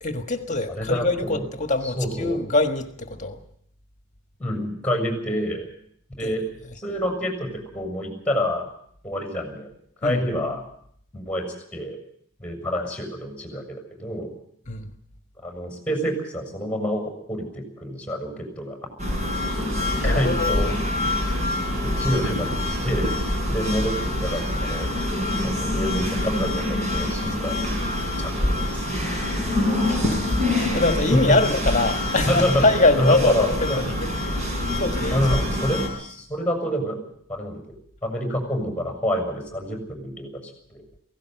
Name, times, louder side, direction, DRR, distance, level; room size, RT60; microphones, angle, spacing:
voice 1, 0.0-3.4 6.2-6.3 10.0-10.2 14.7-14.9 20.0-20.7 23.8-23.9 29.8-33.9 34.5-35.2, left 2 dB, 35° left, 1.6 m, -23 dB
voice 2, 0.8-1.5 1.8-2.4 4.4-5.7 6.2-6.4 6.7-8.7 9.0-9.7 10.0-10.6 11.1-11.4 11.7-12.0 12.4-14.3 15.4-18.8 19.8-20.7 21.8-23.1 23.5-24.9 25.4-27.7 28.2-29.1 31.1-31.4 32.3-32.6 33.0-33.8 35.1-37.0 37.3-37.6 38.0-40.8, equal, 5° left, 6.7 m, -27 dB
sound 1, 19.0-35.9, left 1 dB, 35° right, 5.1 m, -25 dB
17.0 x 17.0 x 9.2 m
head